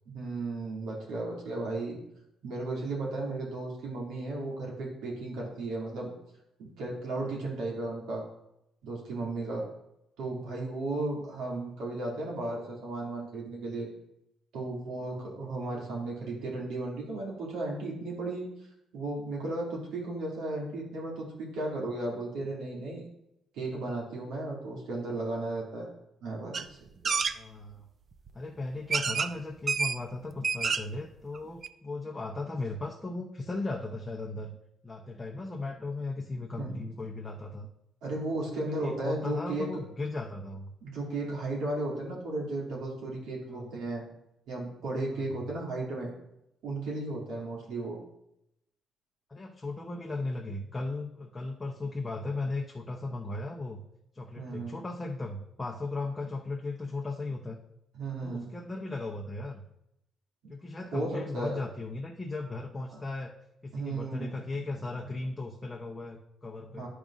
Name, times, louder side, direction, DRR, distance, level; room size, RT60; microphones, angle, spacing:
voice 1, 0.1-2.0 2.4-6.1 6.6-8.2 8.8-9.6 10.2-13.9 14.5-18.5 18.9-23.1 23.5-25.9 26.2-27.1 36.6-36.8 38.0-39.7 40.8-44.0 44.5-46.1 46.6-48.0 54.3-54.8 57.9-58.5 60.9-61.6 62.9-63.0 63.7-64.7 66.8-66.9, right 2 dB, 90° right, -3 dB, 2.3 m, -35 dB
sound 1, 26.5-26.7 27.0-27.3 28.3-28.4 28.9-29.3 29.7-30.0 30.3-31.0 31.3-31.4 31.6-31.7, right 5 dB, 45° right, 0.4 m, -28 dB
voice 2, 27.3-27.9 28.3-34.6 34.8-37.7 38.5-40.7 43.5-43.7 45.1-45.4 49.3-53.8 54.1-57.6 58.2-59.6 60.5-63.3 63.6-66.9, left 2 dB, 20° left, -1 dB, 0.8 m, -37 dB
10.5 x 5.1 x 2.4 m, 0.82 s
cardioid pair, 90°, 0 cm